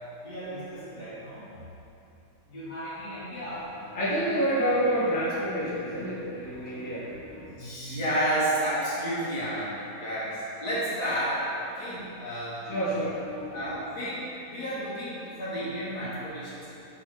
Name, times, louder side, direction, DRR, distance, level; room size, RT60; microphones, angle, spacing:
voice 1, 0.2-1.5 2.5-3.7 7.5-12.7 13.5-16.7, right 1 dB, 65° left, -9 dB, 1.9 m, -32 dB
voice 2, 3.8-7.4 12.7-13.7, equal, 10° left, -10 dB, 1.2 m, -28 dB
4.8 x 4.3 x 4.8 m, 2.9 s
omnidirectional pair, 1.9 m